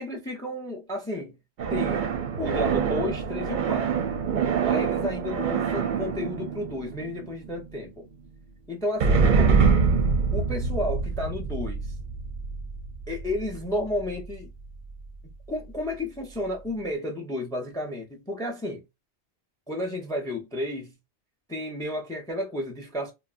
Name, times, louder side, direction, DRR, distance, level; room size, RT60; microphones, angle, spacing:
voice 1, 0.0-1.4 1.7-2.1 2.4-4.1 4.6-8.0 8.7-9.6 10.3-11.9 13.1-14.5 15.5-18.8 19.7-20.9 21.5-23.1, left 1 dB, 5° left, 0.4 m, -32 dB
sound 1, 1.6-7.5 9.0-14.3, right 5 dB, 60° right, 0.6 m, -25 dB
3.0 x 2.1 x 2.4 m
omnidirectional pair, 1.1 m